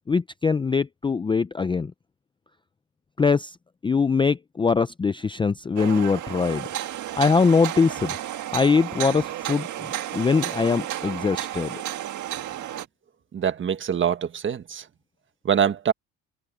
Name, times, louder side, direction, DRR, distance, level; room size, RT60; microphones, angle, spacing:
voice 1, 0.1-1.9 3.2-3.6 3.8-6.7 7.2-8.1 8.5-11.8, left 5 dB, 15° left, 0.5 m, -22 dB
sound 1, 5.8-12.9, right 13 dB, 55° right, 1.7 m, -32 dB
voice 2, 13.3-14.8 15.4-15.9, right 8 dB, 35° right, 1.5 m, -24 dB
cardioid pair, 135°, 34 cm